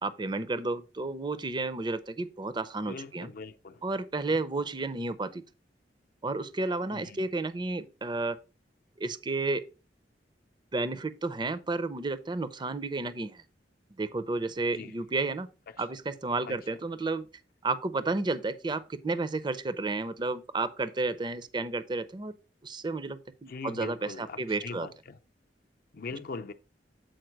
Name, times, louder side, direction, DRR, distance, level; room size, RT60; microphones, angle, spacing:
voice 1, 0.0-3.3 3.8-5.4 6.2-8.4 9.0-9.7 10.7-13.4 14.0-15.5 15.8-17.3 17.6-22.3 22.6-24.9, right 3 dB, 25° right, 0.5 m, -32 dB
voice 2, 2.9-3.8 6.9-7.2 14.7-14.9 16.5-16.6 23.5-25.2 25.9-26.5, left 4 dB, 55° left, 0.6 m, -41 dB
7.8 x 4.5 x 4.6 m
head